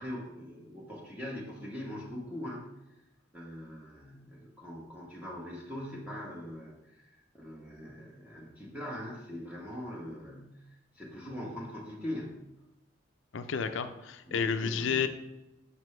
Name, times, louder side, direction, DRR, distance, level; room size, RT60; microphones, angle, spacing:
voice 1, 0.0-2.7 3.3-10.6 10.9-12.3 14.3-15.1, left 1 dB, 10° right, -5 dB, 1.0 m, -42 dB
voice 2, 13.3-15.1, left 6 dB, 75° left, 8 dB, 0.5 m, -31 dB
6.1 x 5.7 x 3.2 m, 0.94 s
head